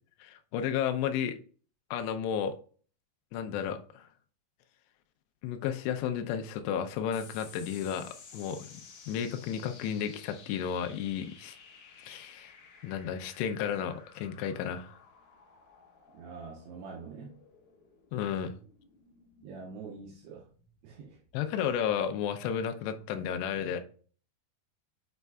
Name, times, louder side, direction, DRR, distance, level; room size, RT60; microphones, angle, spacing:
voice 1, 0.2-1.4 1.9-2.6 3.3-4.1 5.4-11.6 12.0-12.5 12.8-15.0 18.1-18.6 21.3-23.8, left 8 dB, 80° left, 7 dB, 2.7 m, -33 dB
sound 1, 7.1-21.9, left 5 dB, 50° left, 1.8 m, -55 dB
voice 2, 16.1-17.4 19.4-20.5 20.8-21.2, right 4 dB, 75° right, -3 dB, 2.8 m, -45 dB
8.1 x 5.2 x 2.3 m, 0.42 s
omnidirectional pair, 5.1 m